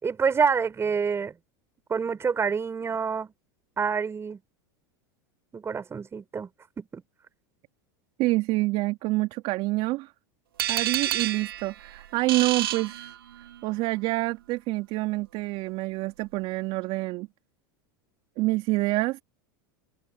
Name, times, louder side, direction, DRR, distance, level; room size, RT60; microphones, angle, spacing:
voice 1, 0.0-1.3 1.9-3.3 3.8-4.4 5.5-6.5 6.8-7.0, right 6 dB, 20° right, 5.3 m, -27 dB
voice 2, 8.2-10.1 10.7-13.1 13.6-17.3 18.4-19.2, right 20 dB, 55° right, 2.5 m, -27 dB
sound 1, 10.6-13.6, right 12 dB, 85° right, 3.4 m, -30 dB
hypercardioid pair, 105°, 12 cm